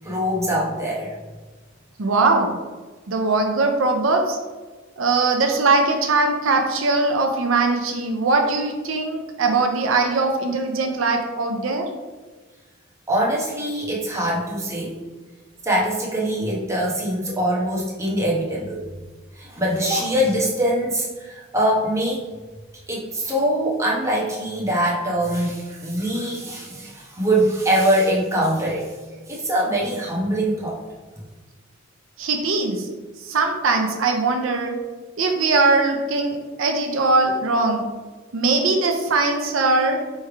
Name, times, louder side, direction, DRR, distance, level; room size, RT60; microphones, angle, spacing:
voice 1, 0.0-1.1 13.1-14.9 15.6-18.8 19.3-22.3 22.9-29.0 29.3-30.8, right 1 dB, 15° right, -5 dB, 1.0 m, -23 dB
voice 2, 2.0-2.6 3.1-4.4 5.0-11.9 32.2-32.9 33.2-34.8 35.2-37.9 38.3-40.0, right 3 dB, 80° right, 4 dB, 0.6 m, -21 dB
3.3 x 3.3 x 4.6 m, 1.4 s
head